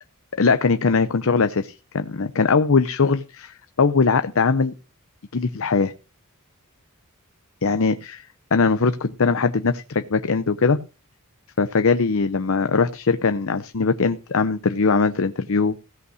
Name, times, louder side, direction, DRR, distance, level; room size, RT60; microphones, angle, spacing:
voice 1, 0.4-4.7 5.3-5.9 7.6-8.2 8.5-10.8 11.6-15.8, left 4 dB, 65° left, 10 dB, 0.7 m, -21 dB
16.5 x 5.6 x 6.3 m, 0.33 s
head